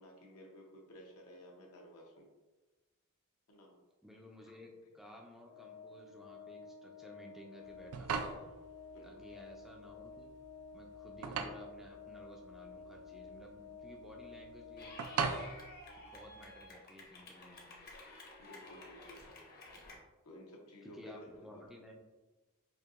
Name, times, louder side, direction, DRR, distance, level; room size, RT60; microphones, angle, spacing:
voice 1, 0.0-2.3 3.5-3.7 8.9-9.1 18.4-19.5 20.2-21.6, equal, 80° left, 0 dB, 0.8 m, -55 dB
voice 2, 4.0-8.5 9.0-10.3 10.7-15.5 16.0-17.8 20.8-22.0, left 1 dB, ahead, 0 dB, 0.3 m, -55 dB
Organ, 5.4-16.1, left 4 dB, 60° left, 1.0 m, -52 dB
sound 1, 7.7-16.6, right 5 dB, 90° right, 0.4 m, -41 dB
Clapping / Cheering, 14.8-20.0, left 2 dB, 45° left, 0.7 m, -53 dB
4.5 x 2.6 x 2.4 m, 1.2 s
head